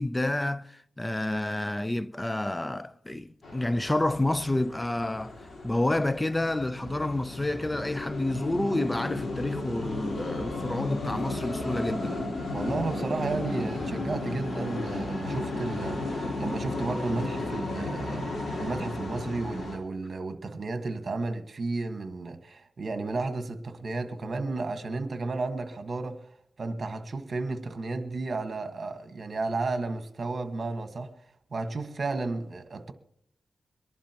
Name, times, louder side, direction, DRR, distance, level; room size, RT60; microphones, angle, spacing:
voice 1, 0.0-5.3 5.6-12.2, left 1 dB, 15° left, 0.5 m, -29 dB
sound 1, 3.4-19.8, left 2 dB, 65° left, 3.8 m, -34 dB
voice 2, 12.5-26.2 26.6-31.1 31.5-32.9, right 3 dB, 55° right, 1.5 m, -33 dB
23.5 x 11.5 x 2.9 m
cardioid pair, 75°, 0 cm